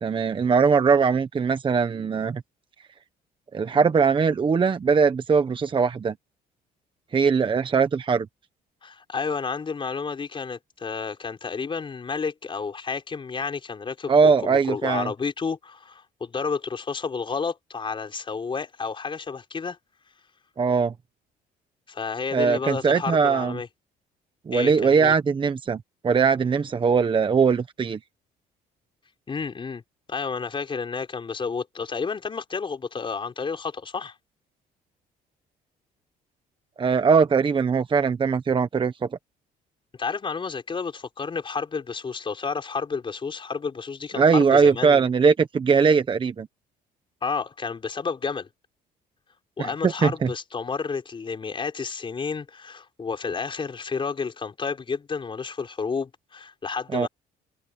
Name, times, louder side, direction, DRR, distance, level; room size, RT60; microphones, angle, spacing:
voice 1, 0.0-2.4 3.5-6.1 7.1-8.3 14.1-15.1 20.6-20.9 22.3-23.6 24.5-28.0 36.8-38.9 44.1-46.5 49.6-50.3 56.9-57.1, right 5 dB, 30° right, 1.2 m, -21 dB
voice 2, 8.8-19.8 21.9-23.7 24.5-25.1 29.3-29.8 30.1-34.1 40.0-45.1 47.2-48.5 49.6-57.1, left 5 dB, 30° left, 4.4 m, -31 dB
cardioid pair, 110°, 17 cm